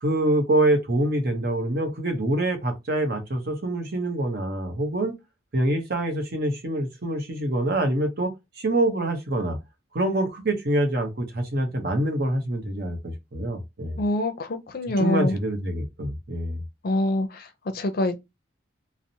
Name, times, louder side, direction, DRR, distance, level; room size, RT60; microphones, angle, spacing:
voice 1, 0.0-5.1 5.5-9.6 9.9-14.0 15.0-16.6, right 1 dB, 50° right, 0.7 m, -25 dB
voice 2, 14.0-15.3 16.8-18.2, left 1 dB, 50° left, 0.5 m, -25 dB
2.8 x 2.0 x 2.7 m
head